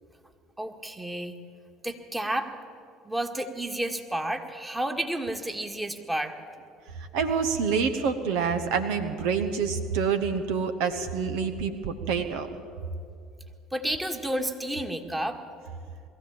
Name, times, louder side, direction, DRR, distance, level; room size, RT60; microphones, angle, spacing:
voice 1, 0.6-1.3 1.8-2.5 3.0-6.3 13.7-15.4, right 1 dB, 10° right, 5 dB, 1.9 m, -31 dB
voice 2, 7.1-12.5, right 6 dB, 65° right, 8 dB, 1.1 m, -27 dB
21.5 x 15.0 x 8.8 m, 2.4 s
figure-of-eight pair, 60°, 0 cm